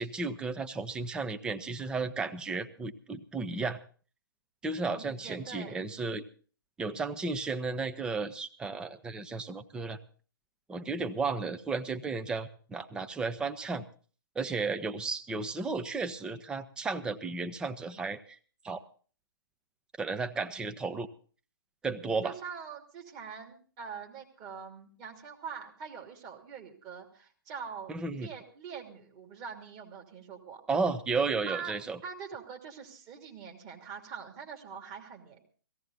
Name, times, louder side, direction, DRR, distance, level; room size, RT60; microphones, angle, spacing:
voice 1, 0.0-3.8 4.6-6.2 6.8-10.0 10.7-13.8 14.4-18.4 18.6-18.8 20.0-21.1 21.8-22.4 27.9-28.3 30.7-32.0, right 4 dB, 5° right, 8 dB, 0.7 m, -33 dB
voice 2, 4.8-5.8 22.2-30.6 31.5-31.7 32.0-35.4, right 6 dB, 30° right, 2 dB, 2.9 m, -44 dB
17.0 x 16.0 x 4.0 m, 0.41 s
figure-of-eight pair, 130°, 12 cm